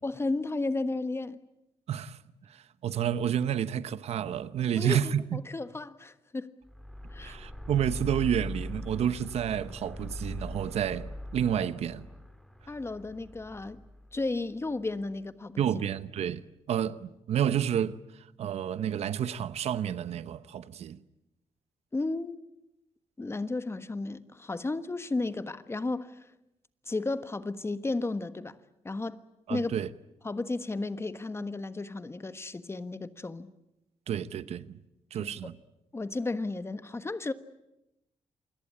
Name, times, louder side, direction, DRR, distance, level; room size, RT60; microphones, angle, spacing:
voice 1, 0.0-1.4 4.8-5.0 5.3-6.5 7.1-7.4 12.7-13.8 14.1-15.6 21.9-22.4 23.2-26.3 26.9-28.6 28.8-29.2 29.5-29.8 30.2-33.5 35.2-35.5 35.9-37.3, left 3 dB, 25° left, 1.3 m, -33 dB
voice 2, 1.9-2.2 2.5-5.4 7.2-12.1 15.6-21.0 29.5-29.9 34.1-34.8 35.1-35.6, right 9 dB, 75° right, 0.9 m, -30 dB
sound 1, 6.6-15.0, left 1 dB, 5° left, 3.3 m, -41 dB
28.0 x 21.5 x 8.7 m
cardioid pair, 90°, 11 cm